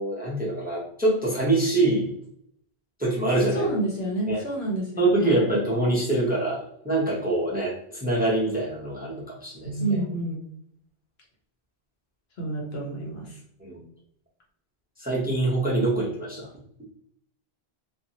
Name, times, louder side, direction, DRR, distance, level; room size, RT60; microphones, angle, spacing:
voice 1, 0.0-2.1 3.0-3.7 4.3-4.4 5.0-9.7 13.6-13.8 15.0-16.5, right 2 dB, 10° right, -5 dB, 0.6 m, -24 dB
voice 2, 3.5-5.4 9.6-10.4 12.4-13.4, right 2 dB, 75° left, -2 dB, 1.2 m, -29 dB
2.6 x 2.5 x 2.8 m, 0.69 s
omnidirectional pair, 1.1 m